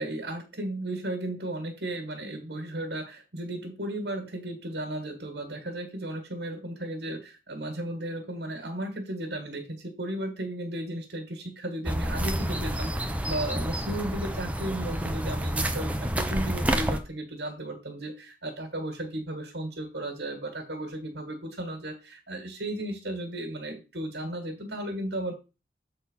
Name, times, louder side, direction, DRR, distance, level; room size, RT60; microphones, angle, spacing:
voice 1, 0.0-25.3, right 1 dB, 80° right, 3 dB, 1.9 m, -35 dB
sound 1, 11.8-17.0, right 1 dB, 10° right, 0.6 m, -29 dB
7.4 x 4.1 x 5.6 m, 0.29 s
head